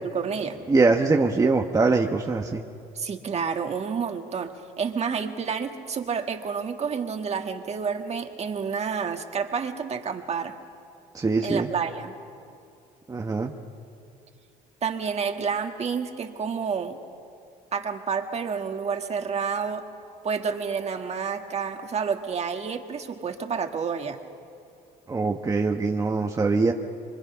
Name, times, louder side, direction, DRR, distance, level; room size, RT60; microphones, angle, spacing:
voice 1, 0.1-0.6 2.9-10.5 11.4-12.1 14.8-17.0 17.7-19.8 20.2-24.2, right 6 dB, 40° right, 5 dB, 1.6 m, -29 dB
voice 2, 0.7-2.6 11.1-11.7 13.1-13.5 25.1-26.7, right 3 dB, 20° right, 2 dB, 1.1 m, -22 dB
25.0 x 24.0 x 5.7 m, 2.5 s
cardioid pair, 110°, 17 cm